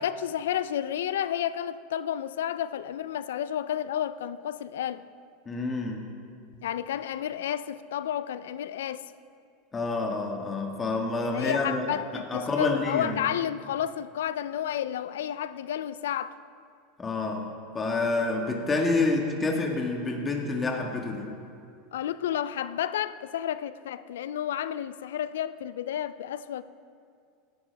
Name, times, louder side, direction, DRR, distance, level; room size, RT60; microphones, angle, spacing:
voice 1, 0.0-5.0 6.6-9.1 11.3-16.4 21.9-26.6, left 10 dB, 85° left, 0.4 m, -31 dB
voice 2, 5.4-6.0 9.7-11.8 12.1-13.2 17.0-21.3, left 3 dB, 20° left, 1.6 m, -28 dB
17.0 x 11.5 x 3.5 m
supercardioid pair, 115°, 0 cm